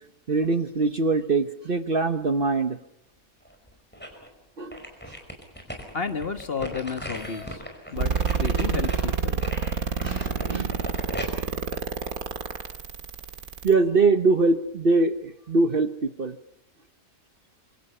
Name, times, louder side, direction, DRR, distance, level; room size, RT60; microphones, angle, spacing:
voice 1, 0.3-2.8 4.6-4.8 10.0-10.8 13.6-16.4, right 3 dB, 40° right, 10 dB, 1.1 m, -23 dB
sound 1, 3.4-4.3 4.7-12.8 13.2-13.3, equal, 5° left, 5.0 m, -39 dB
voice 2, 5.9-7.6 7.9-9.4, left 5 dB, 40° left, 9 dB, 1.6 m, -32 dB
sound 2, 7.1-7.5 8.5-8.6 9.2-9.3 10.0-10.7, left 1 dB, 70° left, 5.4 m, -48 dB
sound 3, 8.0-13.7, right 5 dB, 75° right, 2.2 m, -27 dB
26.0 x 24.5 x 5.6 m, 0.76 s
omnidirectional pair, 1.5 m